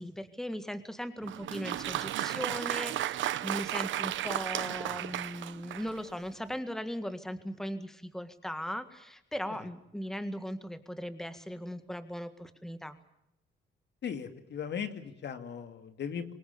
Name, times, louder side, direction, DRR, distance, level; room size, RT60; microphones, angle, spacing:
voice 1, 0.0-13.0, equal, ahead, 10 dB, 1.8 m, -38 dB
Applause, 1.2-6.1, right 13 dB, 75° right, 1.0 m, -34 dB
voice 2, 14.0-16.3, left 7 dB, 60° left, 8 dB, 2.5 m, -37 dB
26.0 x 20.5 x 7.1 m, 0.82 s
cardioid pair, 90°, 20 cm